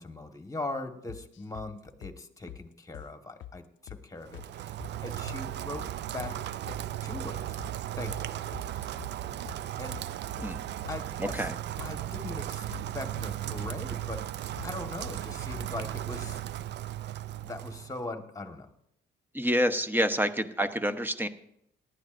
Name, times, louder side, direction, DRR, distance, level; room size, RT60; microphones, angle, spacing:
voice 1, 0.0-4.7 5.0-6.4 7.0-7.4 7.9-8.4 9.8-10.1 10.9-11.5 11.8-12.7 12.9-14.3 14.6-16.4 17.4-18.7, left 2 dB, 15° left, 6 dB, 1.4 m, -40 dB
sound 1, 1.1-1.7 2.0-2.2 2.5-2.6 2.9-3.1 3.4-3.6 3.9-4.0 4.3-4.5 4.8-5.4 5.7-5.9 6.2-6.4 6.7-6.8 7.1-7.3 7.6-7.8 8.1-8.2 8.5-9.2 9.5-9.6 9.9-10.1 10.4-10.6 10.8-11.0 11.3-11.5 11.8-11.9 12.2-12.9 13.2-13.3 13.6-13.8 14.1-14.3 14.6-14.7 15.0-15.2 15.5-15.7, left 12 dB, 70° left, 0.5 m, -45 dB
Rain, 4.2-18.0, right 12 dB, 60° right, 0.4 m, -36 dB
voice 2, 11.2-11.6 19.3-21.3, equal, 10° right, 9 dB, 0.9 m, -28 dB
18.5 x 12.0 x 2.6 m, 0.78 s
cardioid pair, 90°, 20 cm